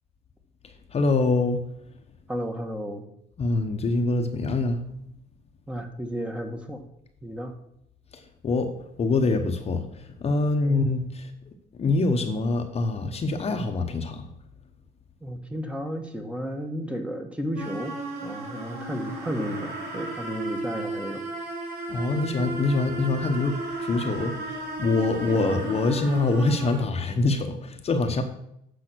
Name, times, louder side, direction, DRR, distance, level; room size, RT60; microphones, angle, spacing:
voice 1, 0.9-1.6 3.4-4.8 8.4-8.7 9.0-9.9 10.2-11.3 11.8-14.3 21.9-28.2, left 3 dB, 35° left, 5 dB, 1.0 m, -25 dB
voice 2, 2.3-3.0 5.7-6.8 7.2-7.6 10.6-10.9 15.2-17.9 18.2-21.2 25.3-25.6, equal, 5° right, 4 dB, 1.3 m, -33 dB
sound 1, 17.6-26.8, right 2 dB, 70° right, 3.0 m, -34 dB
8.6 x 5.6 x 6.3 m, 0.75 s
cardioid pair, 110°, 17 cm